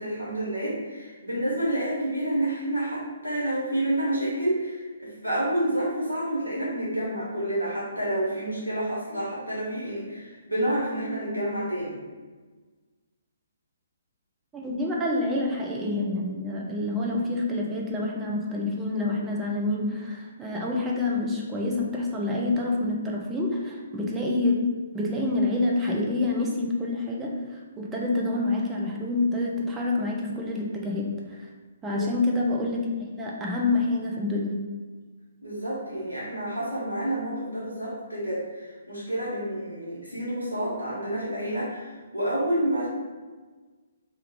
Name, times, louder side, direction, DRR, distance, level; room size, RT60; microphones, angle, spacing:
voice 1, 0.0-12.0 31.8-32.0 35.4-42.9, right 1 dB, 90° left, -7 dB, 1.0 m, -29 dB
voice 2, 14.5-24.7 24.9-27.4 27.8-31.5 31.8-34.6, left 2 dB, 10° right, -2 dB, 0.5 m, -27 dB
3.1 x 2.3 x 3.5 m, 1.4 s
figure-of-eight pair, 130°, 0 cm